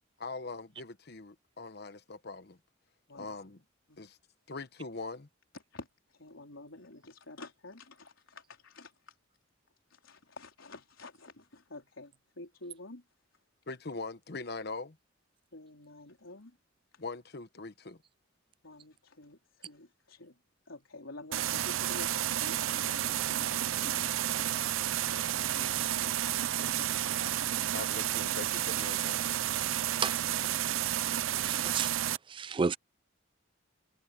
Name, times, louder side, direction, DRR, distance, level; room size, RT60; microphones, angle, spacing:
voice 1, 0.2-2.6 3.1-3.6 4.0-4.2 4.5-5.3 13.7-15.0 17.0-18.0 27.7-29.2, left 3 dB, 55° left, 1.1 m, -41 dB
voice 2, 5.5-9.2 9.9-13.0 15.5-16.6 18.6-20.4 20.7-25.3 25.5-27.3, left 2 dB, 80° left, 4.1 m, -50 dB
sound 1, 21.3-32.2, right 12 dB, 80° right, 0.5 m, -31 dB
voice 3, 31.5-31.9 32.3-32.8, right 5 dB, 25° right, 0.3 m, -31 dB
head